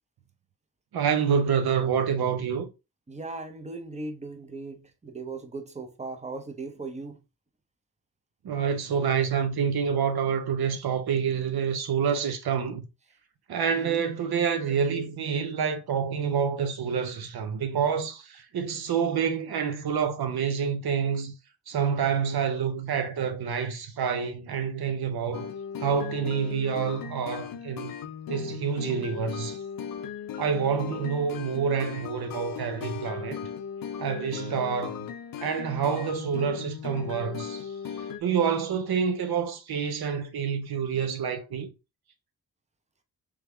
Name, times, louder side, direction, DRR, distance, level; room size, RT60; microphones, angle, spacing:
voice 1, 0.9-2.7 8.4-12.8 13.5-21.3 21.7-25.5 25.8-27.9 28.3-29.6 30.4-33.4 34.0-35.1 35.4-37.7 38.2-41.7, right 7 dB, 75° right, 0.7 m, -27 dB
voice 2, 3.1-7.2 13.7-14.0, right 3 dB, 20° right, 0.8 m, -38 dB
sound 1, 25.3-38.2, left 7 dB, 65° left, 0.5 m, -37 dB
3.5 x 3.4 x 3.1 m
cardioid pair, 65°, 38 cm